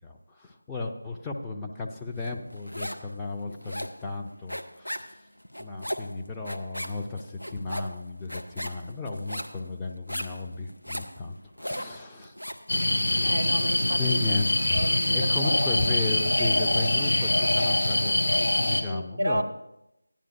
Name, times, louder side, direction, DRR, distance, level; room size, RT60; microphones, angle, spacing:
voice 1, 0.0-5.1 5.6-12.3 14.0-19.4, left 3 dB, 5° left, -2 dB, 0.5 m, -34 dB
sound 1, 2.2-3.1 3.4-12.7, equal, 90° left, 0.7 m, -37 dB
sound 2, 12.7-18.8, left 1 dB, 60° left, 1.3 m, -24 dB
voice 2, 13.2-14.2 14.7-15.6 18.9-19.4, right 1 dB, 70° right, 2 dB, 0.6 m, -32 dB
14.5 x 10.0 x 2.5 m, 0.87 s
figure-of-eight pair, 165°, 0 cm